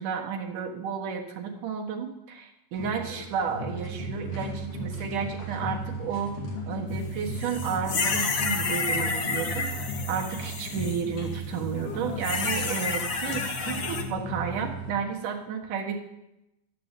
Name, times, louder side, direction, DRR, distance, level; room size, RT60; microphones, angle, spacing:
voice 1, 0.0-6.3 6.7-9.8 10.1-16.0, right 7 dB, 80° right, 3 dB, 3.1 m, -32 dB
sound 1, 2.7-15.0, right 1 dB, 85° left, 4.1 m, -35 dB
sound 2, 7.3-11.0 12.2-14.0, left 4 dB, 45° left, 1.7 m, -30 dB
13.5 x 7.8 x 9.9 m, 0.89 s
omnidirectional pair, 3.6 m